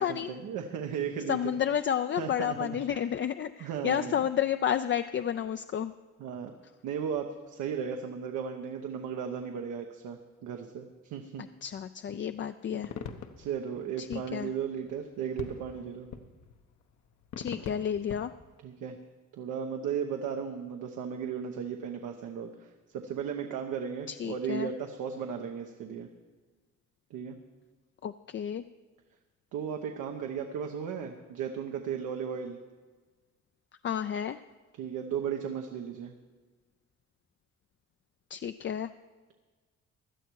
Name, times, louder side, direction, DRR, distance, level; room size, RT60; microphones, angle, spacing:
voice 1, 0.0-1.5 2.1-2.8 3.6-4.2 6.2-6.5 6.8-11.4 12.7-12.8 13.4-16.1 18.6-19.0 19.3-26.1 27.1-27.4 29.5-32.6 34.8-36.1, right 7 dB, 90° right, 4 dB, 1.1 m, -35 dB
voice 2, 1.3-5.9 11.6-12.9 14.0-14.5 17.4-18.3 24.1-24.7 28.0-28.6 33.8-34.4 38.3-38.9, left 9 dB, 40° left, 10 dB, 0.4 m, -31 dB
sound 1, 12.8-18.6, left 7 dB, 70° left, 1.1 m, -43 dB
17.0 x 11.5 x 4.7 m, 1.4 s
cardioid pair, 90°, 30 cm